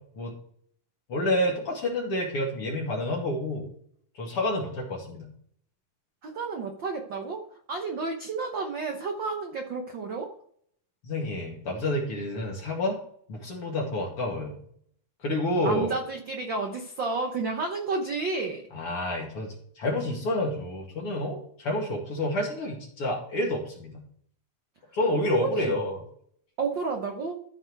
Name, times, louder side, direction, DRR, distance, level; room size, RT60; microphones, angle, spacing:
voice 1, 1.1-3.6 4.2-5.3 11.0-13.0 13.3-14.5 15.2-15.9 18.7-24.0 24.9-26.0, left 1 dB, 45° left, -2 dB, 2.7 m, -29 dB
voice 2, 6.2-10.3 15.6-18.6 25.3-25.7 26.6-27.4, right 4 dB, 90° right, 3 dB, 1.0 m, -31 dB
13.5 x 4.6 x 4.6 m, 0.63 s
omnidirectional pair, 3.7 m